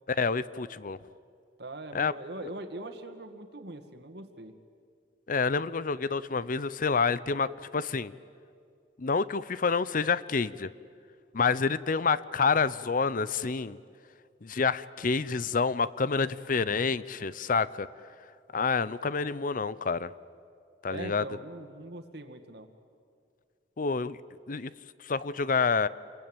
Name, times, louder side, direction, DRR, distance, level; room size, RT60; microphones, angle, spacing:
voice 1, 0.1-1.0 1.9-2.1 5.3-8.1 9.0-10.7 11.3-13.8 14.4-17.9 18.5-20.1 20.8-21.2 23.8-24.2 24.5-24.7 25.1-25.9, left 5 dB, 50° left, 17 dB, 0.7 m, -28 dB
voice 2, 1.6-4.5 20.9-22.7, right 2 dB, 65° right, 7 dB, 2.1 m, -42 dB
27.5 x 22.5 x 9.0 m, 2.3 s
head